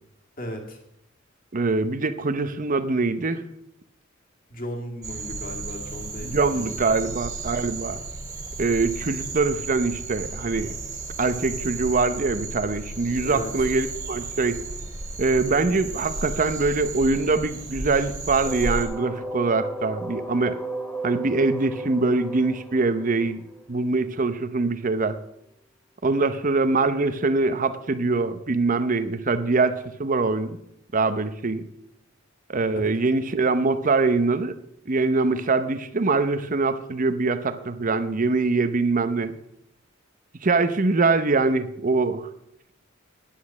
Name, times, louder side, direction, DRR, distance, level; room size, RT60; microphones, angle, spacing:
voice 1, 0.4-0.8 4.5-7.1 13.2-13.5, equal, 45° left, 1 dB, 2.2 m, -36 dB
voice 2, 1.5-3.4 6.2-8.0 8.6-10.7 11.2-14.6 15.2-20.6 21.0-23.4 23.7-25.2 26.0-30.6 30.9-31.7 32.5-34.5 34.9-39.3 40.4-42.3, right 3 dB, 40° right, 12 dB, 0.7 m, -23 dB
sound 1, 5.0-18.9, right 3 dB, 20° right, 2.4 m, -34 dB
sound 2, 18.5-24.2, right 1 dB, 10° left, 1.0 m, -35 dB
10.0 x 8.6 x 7.1 m, 0.80 s
head